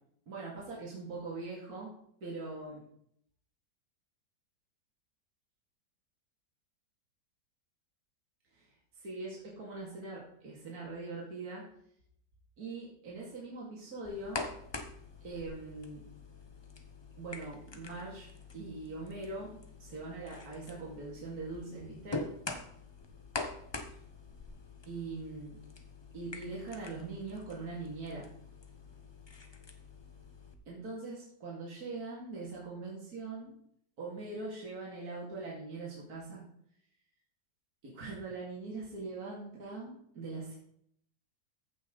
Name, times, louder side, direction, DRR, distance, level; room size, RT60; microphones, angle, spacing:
voice 1, 0.3-1.9 2.2-2.8 8.5-8.7 8.9-11.7 12.6-14.5 15.2-16.0 17.2-18.3 18.5-22.3 24.9-25.6 26.1-28.3 30.7-33.5 34.0-36.4 37.8-40.5, right 3 dB, 55° right, -5 dB, 2.8 m, -42 dB
sound 1, 14.0-30.5, left 3 dB, 45° left, 0.3 m, -45 dB
14.5 x 6.0 x 3.9 m, 0.69 s
omnidirectional pair, 1.9 m